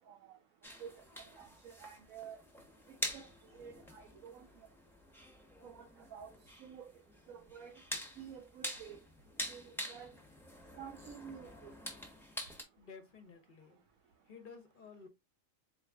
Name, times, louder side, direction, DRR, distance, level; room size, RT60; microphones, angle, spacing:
sound 1, 0.6-12.6, equal, ahead, 0.8 m, -46 dB
voice 1, 1.4-2.4 3.1-3.3 3.5-4.4 5.6-6.3 6.6-6.8 7.3-7.7 8.2-9.0 9.5-10.1 10.8-11.7, right 7 dB, 85° right, 1.1 m, -50 dB
voice 2, 12.8-13.8 14.3-15.1, left 5 dB, 45° left, 0.8 m, -53 dB
4.2 x 2.4 x 3.4 m
omnidirectional pair, 1.4 m